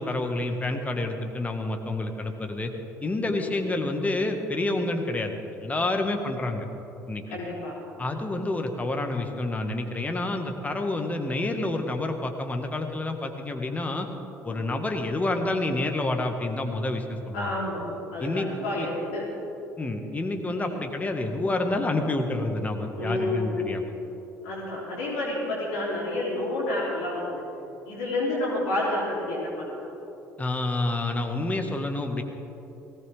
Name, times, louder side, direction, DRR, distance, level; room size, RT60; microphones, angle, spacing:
voice 1, 0.0-2.7 3.0-6.6 7.1-7.2 8.0-14.1 14.4-17.6 18.2-18.9 19.8-23.8 30.4-32.2, left 2 dB, 20° left, 4 dB, 1.8 m, -28 dB
voice 2, 7.3-7.7 14.5-14.6 17.3-19.3 20.6-20.7 23.0-23.6 24.4-27.4 27.8-29.9, left 1 dB, 65° left, -6 dB, 3.5 m, -30 dB
19.0 x 17.0 x 3.7 m, 3.0 s
figure-of-eight pair, 55°, 8 cm